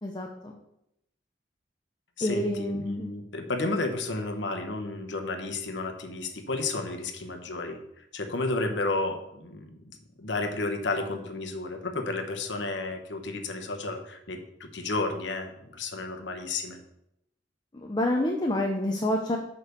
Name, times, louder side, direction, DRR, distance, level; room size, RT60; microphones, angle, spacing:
voice 1, 0.0-0.5 2.2-3.1 17.7-19.4, left 1 dB, 25° left, 1 dB, 0.8 m, -28 dB
voice 2, 2.2-7.8 8.1-9.8 10.2-16.8, left 2 dB, 90° left, 5 dB, 1.1 m, -32 dB
6.9 x 5.4 x 6.7 m, 0.80 s
head